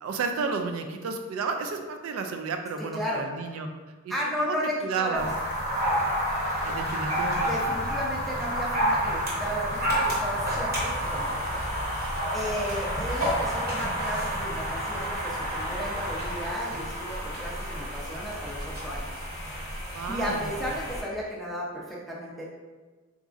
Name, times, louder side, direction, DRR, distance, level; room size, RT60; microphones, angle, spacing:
voice 1, 0.0-3.7 4.0-4.6 4.8-5.3 6.6-7.5 19.9-20.5, right 4 dB, 75° right, 5 dB, 0.3 m, -32 dB
voice 2, 2.9-3.3 4.1-5.3 7.4-11.4 12.3-19.0 20.1-22.4, equal, ahead, -5 dB, 0.5 m, -34 dB
sound 1, 5.1-21.0, equal, 45° right, 0.9 m, -29 dB
4.0 x 2.5 x 2.4 m, 1.3 s
head